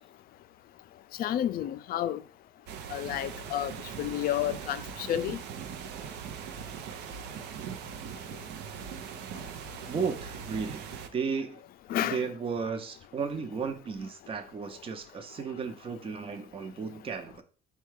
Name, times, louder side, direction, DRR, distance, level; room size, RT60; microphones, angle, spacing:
voice 1, 1.2-2.2 2.9-5.4 11.9-12.3, left 12 dB, 60° left, 0.4 m, -31 dB
sound 1, 2.7-11.1, right 7 dB, 85° right, 0.5 m, -40 dB
voice 2, 9.9-11.6 12.0-17.4, right 5 dB, 30° right, 0.6 m, -34 dB
4.6 x 2.3 x 4.6 m
cardioid pair, 110°, 17 cm